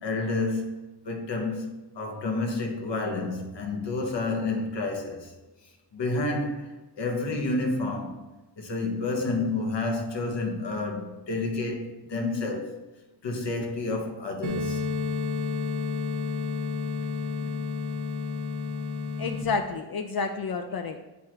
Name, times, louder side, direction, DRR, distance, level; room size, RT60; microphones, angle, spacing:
voice 1, 0.0-0.7 1.0-5.3 5.9-6.7 6.9-8.2 8.6-12.9 13.2-14.8 17.4-17.5, left 2 dB, 70° left, 1.3 m, -30 dB
sound 1, 14.4-19.4, left 4 dB, 60° right, 0.9 m, -30 dB
voice 2, 19.2-21.0, left 4 dB, 55° left, 0.5 m, -30 dB
8.2 x 4.7 x 3.0 m
wide cardioid pair, 95°, 43 cm